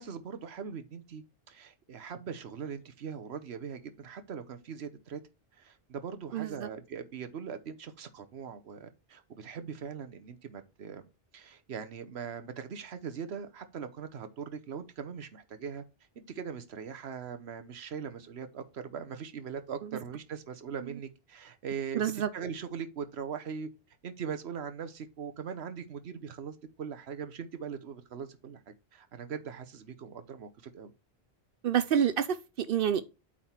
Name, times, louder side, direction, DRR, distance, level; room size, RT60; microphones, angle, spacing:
voice 1, 0.0-5.2 5.6-11.0 11.3-15.8 16.2-23.7 24.0-30.9, right 7 dB, 85° right, 1.2 m, -41 dB
voice 2, 6.3-6.7 19.8-20.0 20.8-21.0 21.9-22.3 31.6-33.0, right 9 dB, 65° right, 0.7 m, -28 dB
8.5 x 3.8 x 4.3 m
omnidirectional pair, 1.1 m